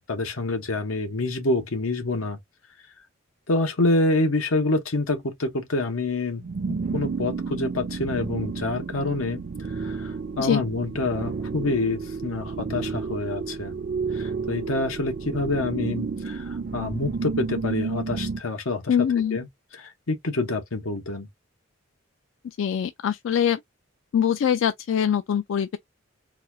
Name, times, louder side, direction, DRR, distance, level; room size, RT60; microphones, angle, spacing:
voice 1, 0.1-2.4 3.5-9.4 9.7-13.7 14.1-19.5 19.7-21.3, left 2 dB, 90° left, 1.0 m, -27 dB
sound 1, 6.4-18.4, right 4 dB, 45° right, 0.4 m, -31 dB
voice 2, 18.9-19.4 22.4-23.6 24.1-25.8, left 8 dB, 65° left, 0.3 m, -23 dB
4.0 x 2.4 x 2.6 m
head